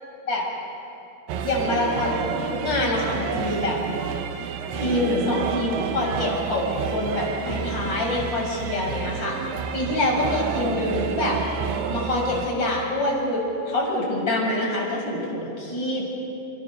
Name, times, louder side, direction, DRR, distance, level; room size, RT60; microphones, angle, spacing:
sound 1, 1.3-12.5, right 6 dB, 80° right, 3.7 m, -30 dB
voice 1, 1.4-3.8 4.7-9.4 9.7-11.4 11.9-16.0, left 1 dB, 25° left, -2 dB, 6.7 m, -25 dB
29.5 x 27.5 x 6.8 m, 2.7 s
omnidirectional pair, 5.2 m